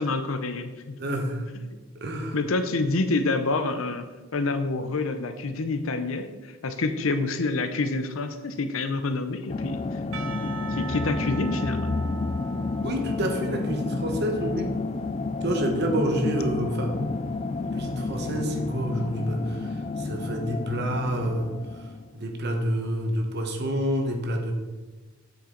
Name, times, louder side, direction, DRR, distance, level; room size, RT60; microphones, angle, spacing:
voice 1, 0.0-1.2 1.7-1.8 2.1-4.0 4.3-9.8 10.4-12.0, left 3 dB, 75° left, 9 dB, 0.7 m, -28 dB
voice 2, 1.0-1.4 2.0-2.4 12.8-14.7 15.4-17.0 17.7-21.5 22.1-24.5, right 1 dB, 50° right, 3 dB, 1.2 m, -28 dB
sound 1, 9.5-22.1, left 3 dB, 30° left, 0.3 m, -30 dB
Percussion / Church bell, 10.1-15.4, right 5 dB, 70° right, 0.8 m, -41 dB
7.9 x 7.1 x 3.9 m, 1.3 s
head